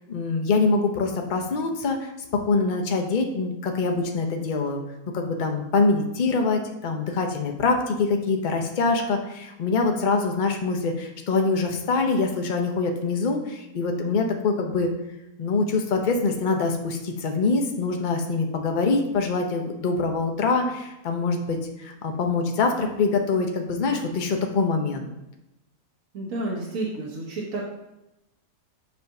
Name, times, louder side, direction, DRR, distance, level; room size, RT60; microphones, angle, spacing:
voice 1, 0.1-4.8 5.1-14.9 15.4-25.1, left 4 dB, 65° left, 4 dB, 0.4 m, -24 dB
voice 2, 26.1-27.7, right 2 dB, 60° right, -3 dB, 1.3 m, -30 dB
7.2 x 2.6 x 5.6 m, 0.93 s
omnidirectional pair, 1.7 m